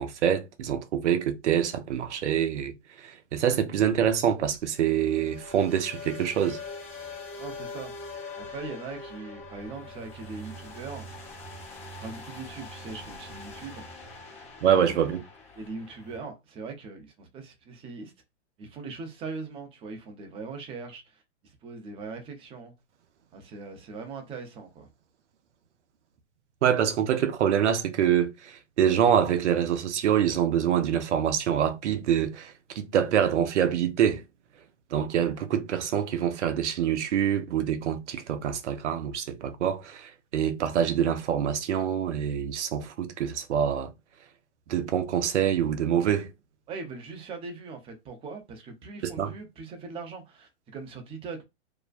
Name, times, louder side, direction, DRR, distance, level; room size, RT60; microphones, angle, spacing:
voice 1, 0.0-2.7 3.0-6.6 14.6-15.2 26.6-34.2 34.9-43.9 44.7-46.3 49.0-49.3, right 9 dB, 75° right, 0.6 m, -25 dB
sound 1, 3.8-16.3, left 2 dB, 20° left, 0.7 m, -43 dB
voice 2, 7.4-7.9 8.4-11.1 11.9-13.8 14.6-15.0 15.6-18.1 18.6-21.2 21.6-22.7 23.3-24.9 46.7-51.4, right 4 dB, 15° right, 0.5 m, -40 dB
2.5 x 2.1 x 2.4 m
hypercardioid pair, 125°, 36 cm